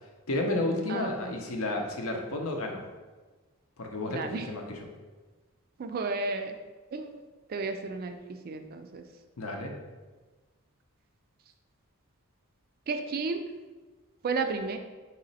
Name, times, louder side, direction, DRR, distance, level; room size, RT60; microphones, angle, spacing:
voice 1, 0.3-2.8 3.8-4.9 9.4-9.7, left 2 dB, 70° left, 2 dB, 0.7 m, -31 dB
voice 2, 0.9-1.3 4.1-4.5 5.8-6.6 6.9-7.1 7.5-8.2 8.5-9.0 12.9-13.4 14.2-14.8, right 4 dB, 45° right, 7 dB, 0.3 m, -32 dB
4.0 x 3.0 x 4.1 m, 1.3 s
head